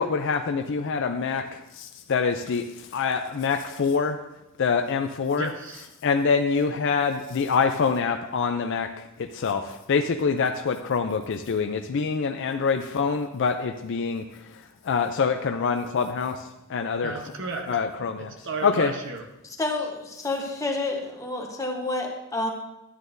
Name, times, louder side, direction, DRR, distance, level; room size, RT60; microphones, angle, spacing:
voice 1, 0.0-4.2 4.6-5.5 6.0-17.2 17.7-18.3 18.6-18.9, left 5 dB, 60° left, 7 dB, 0.4 m, -25 dB
voice 2, 5.4-5.8 17.0-17.8 18.4-19.2, right 3 dB, 60° right, 5 dB, 0.9 m, -34 dB
voice 3, 19.6-22.5, left 2 dB, 15° left, 1 dB, 1.1 m, -29 dB
11.0 x 8.5 x 2.6 m, 0.91 s
head